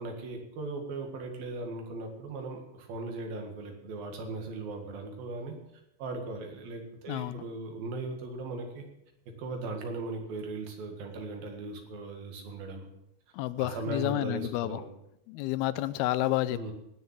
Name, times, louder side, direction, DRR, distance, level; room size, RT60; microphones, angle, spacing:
voice 1, 0.0-5.6 6.0-8.9 9.4-12.9 13.6-14.9 16.5-16.7, right 2 dB, 70° right, 3 dB, 3.7 m, -38 dB
voice 2, 7.1-7.4 13.3-14.8 15.3-16.7, left 15 dB, 85° left, 15 dB, 2.6 m, -30 dB
17.5 x 6.9 x 7.4 m, 0.82 s
omnidirectional pair, 4.4 m